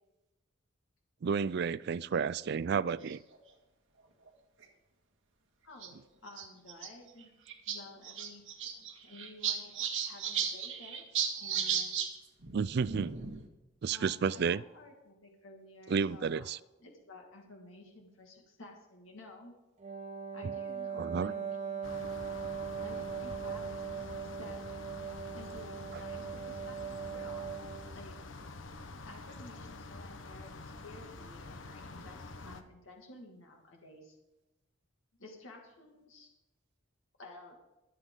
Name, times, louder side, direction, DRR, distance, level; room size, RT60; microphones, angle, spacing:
voice 1, 1.2-3.2 12.5-13.1 13.8-14.6 15.9-16.6 21.0-21.3, right 6 dB, 55° right, 0.4 m, -31 dB
sound 1, 3.0-3.4 4.3-4.4 4.6-4.7 5.8-5.9 6.3-6.9 7.2-7.3 7.5-7.8 8.0-12.1 12.4-13.5, right 7 dB, 75° right, 2.1 m, -35 dB
voice 2, 5.6-7.3 7.7-8.4 9.0-11.1 11.4-12.0 13.9-16.5 16.8-19.5 20.3-22.1 22.8-24.6 25.3-27.6 27.9-28.2 29.0-34.2 35.2-36.3 37.2-37.5, left 2 dB, 90° left, 2.3 m, -53 dB
Wind instrument woodwind instrument, 19.8-28.0, right 6 dB, 35° right, 1.3 m, -40 dB
sound 2, 21.8-32.6, left 3 dB, 75° left, 1.0 m, -47 dB
24.0 x 8.2 x 3.9 m
head